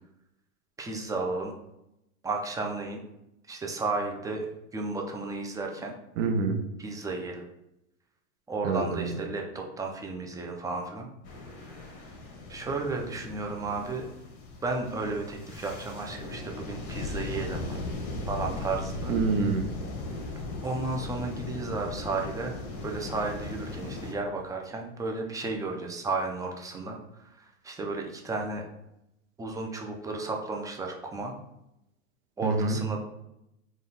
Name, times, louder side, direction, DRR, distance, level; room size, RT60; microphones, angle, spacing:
voice 1, 0.8-1.5 2.2-3.0 3.5-4.5 4.7-6.0 6.8-7.4 8.5-11.1 11.5-12.0 12.5-14.1 14.6-17.8 18.3-19.1 20.6-22.6 22.8-28.6 29.4-31.3 32.4-33.0, right 3 dB, 10° right, 1 dB, 0.4 m, -33 dB
voice 2, 6.2-6.7 8.6-9.2 19.1-19.7 32.4-32.8, right 4 dB, 60° right, 5 dB, 0.8 m, -27 dB
sound 1, 11.2-24.1, left 2 dB, 55° left, 1.1 m, -38 dB
3.9 x 2.5 x 3.9 m, 0.85 s
hypercardioid pair, 105°, 42 cm